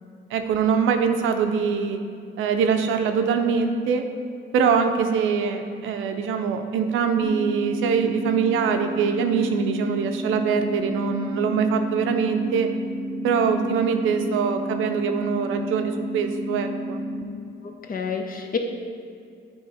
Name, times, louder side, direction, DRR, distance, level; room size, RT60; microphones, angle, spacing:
voice 1, 0.3-2.0 2.4-4.0 4.5-12.7 13.2-17.0, right 6 dB, 85° right, 6 dB, 0.6 m, -23 dB
sound 1, 7.2-17.2, equal, 20° right, 0.8 m, -31 dB
voice 2, 17.6-18.6, left 6 dB, 45° left, 4 dB, 0.8 m, -29 dB
8.9 x 3.1 x 4.8 m, 2.3 s
cardioid pair, 90°, 20 cm